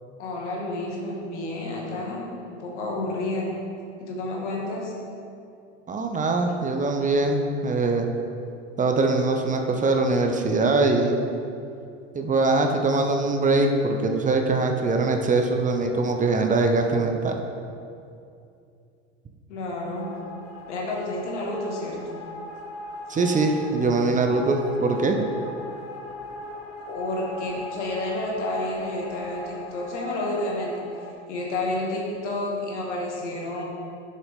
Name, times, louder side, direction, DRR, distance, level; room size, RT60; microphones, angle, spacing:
voice 1, 0.2-3.5 4.0-4.9 19.5-20.1 20.7-22.2 26.9-30.7 31.3-33.7, left 2 dB, 85° left, -3 dB, 1.7 m, -30 dB
voice 2, 5.9-8.1 8.8-11.2 12.1-17.4 23.1-25.2, right 3 dB, 20° right, 4 dB, 0.7 m, -22 dB
sound 1, 20.0-31.1, left 2 dB, 45° left, 0.9 m, -40 dB
6.8 x 6.6 x 3.6 m, 2.5 s
hypercardioid pair, 85°, 34 cm